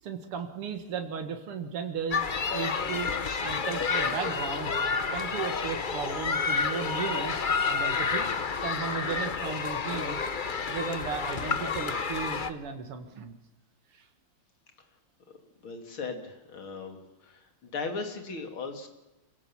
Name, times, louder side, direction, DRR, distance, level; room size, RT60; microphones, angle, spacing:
voice 1, 0.0-3.1 3.4-4.7 5.1-8.3 8.6-10.2 10.7-13.4 13.9-14.1, right 6 dB, 90° right, 6 dB, 2.6 m, -35 dB
sound 1, 2.1-12.5, left 5 dB, 40° left, 0.6 m, -30 dB
voice 2, 15.6-17.0 17.2-18.9, left 4 dB, 70° left, 5 dB, 3.5 m, -37 dB
26.0 x 17.0 x 7.3 m, 0.97 s
omnidirectional pair, 2.4 m